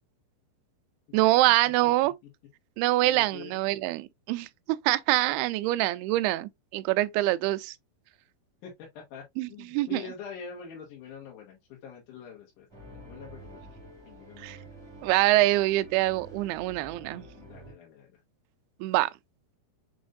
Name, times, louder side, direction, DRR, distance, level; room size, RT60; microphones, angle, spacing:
voice 1, 1.1-2.1 2.8-4.5 4.9-7.7 9.4-10.0 14.4-14.6 15.0-17.2 18.8-19.1, right 17 dB, 85° right, 2.3 m, -25 dB
voice 2, 3.0-3.6 8.6-9.2 9.5-13.6 14.1-14.7 17.3-18.1, left 6 dB, 65° left, 2.3 m, -45 dB
sound 1, 12.7-17.7, right 1 dB, 15° right, 0.9 m, -48 dB
6.4 x 3.2 x 2.5 m
omnidirectional pair, 5.0 m